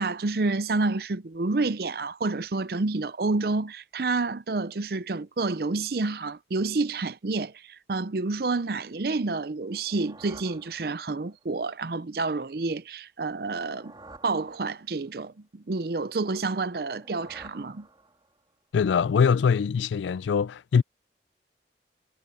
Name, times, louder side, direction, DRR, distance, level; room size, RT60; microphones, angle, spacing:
voice 1, 0.0-13.9 14.2-17.9, right 3 dB, 55° right, 0.6 m, -29 dB
sound 1, 9.6-11.4 13.3-15.2 16.7-18.5, right 2 dB, 25° right, 3.5 m, -51 dB
voice 2, 18.7-20.8, left 6 dB, 85° left, 0.3 m, -23 dB
head